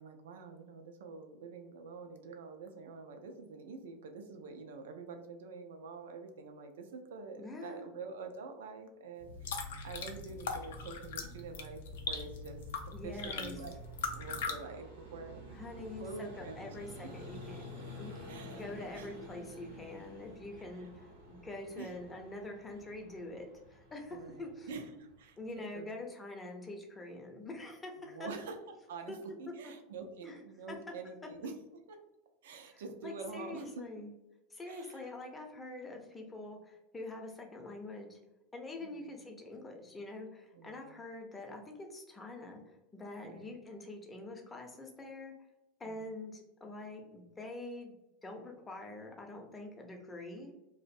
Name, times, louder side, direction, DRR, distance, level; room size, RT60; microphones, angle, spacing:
voice 1, 0.0-12.6 13.0-13.7 14.1-15.6 16.0-16.9 18.3-18.6 18.9-19.1 21.8-21.9 24.1-25.4 25.7-25.9 28.1-28.6 28.9-29.1 29.4-32.0 32.4-33.8 34.7-35.1 38.8-39.2 40.5-41.0 43.2-43.5 45.8-46.1, right 4 dB, 75° right, 5 dB, 0.4 m, -46 dB
voice 2, 7.4-7.8 12.9-13.5 15.5-17.6 17.9-24.7 25.4-28.3 29.1-29.2 29.5-29.7 30.2-30.4 30.7-30.8 32.7-34.1 34.5-38.2 38.5-45.3 45.8-47.9 48.2-50.5, left 2 dB, 20° left, 2 dB, 0.6 m, -45 dB
sound 1, 9.2-14.6, left 4 dB, 75° left, 0.3 m, -40 dB
Vehicle, 11.2-25.9, equal, 90° right, 0.8 m, -51 dB
2.5 x 2.0 x 2.5 m, 0.97 s
hypercardioid pair, 90°, 0 cm